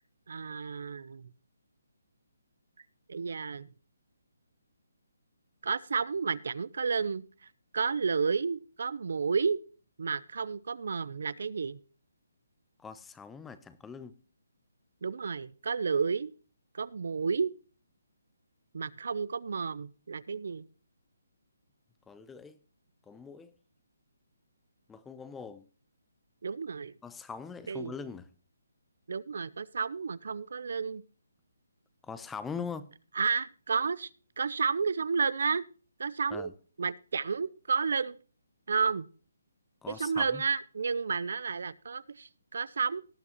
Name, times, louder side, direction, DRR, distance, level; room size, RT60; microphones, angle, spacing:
voice 1, 0.3-1.3 3.1-3.7 5.6-7.2 7.7-9.6 10.0-11.8 15.0-16.3 16.7-17.5 18.7-20.7 26.4-26.9 27.7-27.9 29.1-31.0 33.2-34.1 34.4-35.6 36.0-36.5 36.8-38.2 38.7-39.1 39.9-43.0, right 5 dB, 65° right, 0.6 m, -31 dB
voice 2, 12.8-14.2 22.1-22.6 23.1-23.5 24.9-25.6 27.0-28.3 32.0-32.9 36.3-36.5 39.8-40.4, left 5 dB, 5° left, 0.6 m, -42 dB
18.5 x 8.3 x 2.9 m
hypercardioid pair, 160°, 0 cm